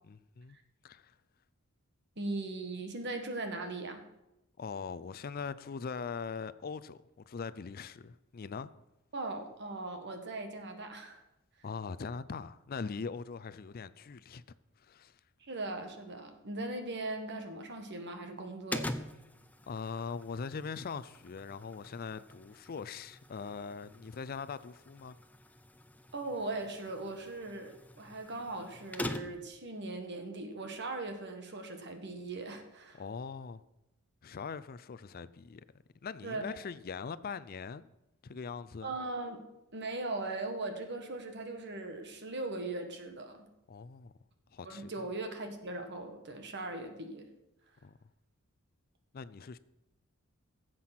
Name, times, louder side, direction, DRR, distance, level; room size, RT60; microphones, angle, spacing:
voice 1, 0.1-0.6 0.8-1.2 4.6-8.7 11.6-14.4 14.8-15.2 19.7-25.2 33.0-33.6 34.2-35.6 36.0-37.9 38.2-38.9 43.7-44.1 44.5-44.9 47.8-47.9 49.1-49.6, left 5 dB, 45° left, 0.4 m, -41 dB
voice 2, 2.2-4.0 9.1-11.2 15.4-18.9 26.1-33.0 36.2-36.4 38.8-39.4 39.7-43.5 44.6-47.3, right 2 dB, 55° right, 1.5 m, -39 dB
sound 1, 18.7-29.6, left 1 dB, 5° left, 0.7 m, -45 dB
15.5 x 7.7 x 5.9 m
head